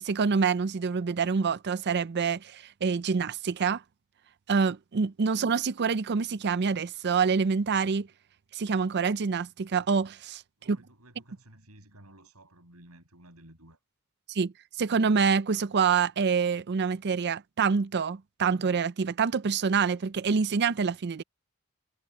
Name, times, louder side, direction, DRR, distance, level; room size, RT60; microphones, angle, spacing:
voice 1, 0.0-3.8 4.5-8.1 8.5-10.4 10.7-10.8 14.3-14.5 14.8-21.2, right 5 dB, 50° right, 0.5 m, -26 dB
voice 2, 10.6-13.8, right 1 dB, 90° right, 7.7 m, -54 dB
head